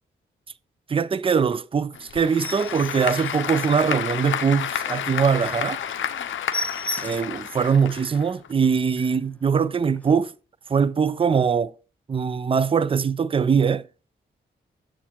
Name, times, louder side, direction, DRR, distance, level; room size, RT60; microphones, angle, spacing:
voice 1, 0.9-5.8 7.0-10.3 10.7-11.7 12.1-13.9, right 6 dB, 25° right, 0.4 m, -22 dB
Applause / Crowd, 1.9-8.5, left 9 dB, 70° left, 0.5 m, -30 dB
sound 1, 2.2-4.4 4.8-5.0 5.3-5.4 5.7-5.9 6.1-7.5 7.9-8.0 8.4-8.5 8.7-9.2 10.0-10.1, left 2 dB, 5° left, 0.9 m, -35 dB
7.1 x 7.0 x 3.0 m
supercardioid pair, 45°, 21 cm